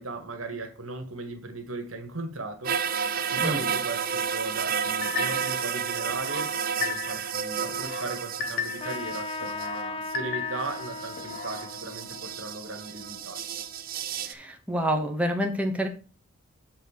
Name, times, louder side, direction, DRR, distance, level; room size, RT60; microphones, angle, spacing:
voice 1, 0.0-2.8 3.3-13.4, right 2 dB, 85° right, 1.7 m, -37 dB
sound 1, 2.6-9.8 10.6-14.3, right 7 dB, 45° right, 0.6 m, -31 dB
sound 2, 5.0-5.6 6.1-7.3 7.7-9.0 9.4-10.8 11.2-11.7, left 6 dB, 45° left, 1.1 m, -35 dB
Trumpet, 8.8-13.8, left 3 dB, 25° left, 0.6 m, -38 dB
voice 2, 14.2-15.9, equal, 5° right, 1.0 m, -27 dB
7.9 x 4.1 x 6.5 m
head